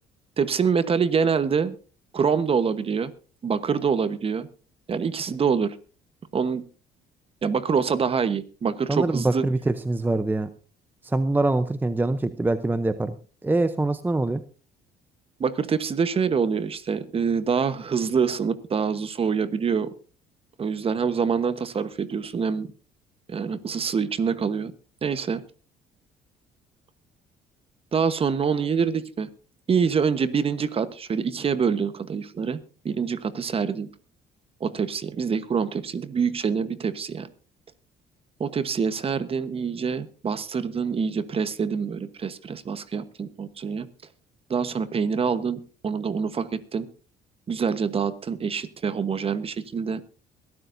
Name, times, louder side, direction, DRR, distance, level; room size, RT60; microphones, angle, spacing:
voice 1, 0.4-1.8 2.1-3.1 3.4-4.5 4.9-5.8 6.3-6.6 7.4-9.4 15.4-19.9 20.6-22.7 23.3-24.7 25.0-25.4 27.9-29.3 29.7-32.6 32.8-33.9 34.6-37.3 38.4-43.9 44.5-46.9 47.5-50.0, right 6 dB, 35° right, 13 dB, 1.1 m, -25 dB
voice 2, 8.9-10.5 11.1-13.1 13.4-14.4, right 2 dB, 10° right, 12 dB, 0.7 m, -24 dB
22.5 x 12.5 x 2.7 m, 0.36 s
cardioid pair, 110°, 17 cm